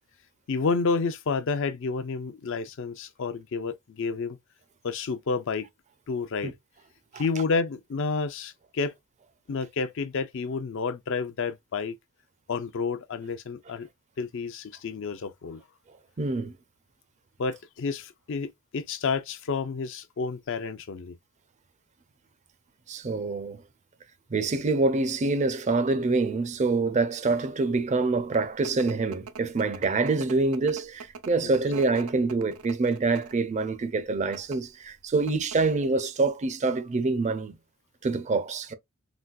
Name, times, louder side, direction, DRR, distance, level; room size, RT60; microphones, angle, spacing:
voice 1, 0.5-4.4 4.8-5.7 6.1-6.5 7.1-8.9 9.5-12.0 12.5-13.9 14.2-15.6 17.4-21.2, left 4 dB, 60° left, 0.4 m, -30 dB
voice 2, 16.2-16.5 22.9-23.6 24.3-37.6 38.0-38.7, right 3 dB, 30° right, 0.4 m, -26 dB
sound 1, 28.0-33.5 34.2-34.6 35.0-35.1 35.3-35.8, right 5 dB, 90° right, 0.5 m, -43 dB
3.9 x 2.3 x 2.3 m
head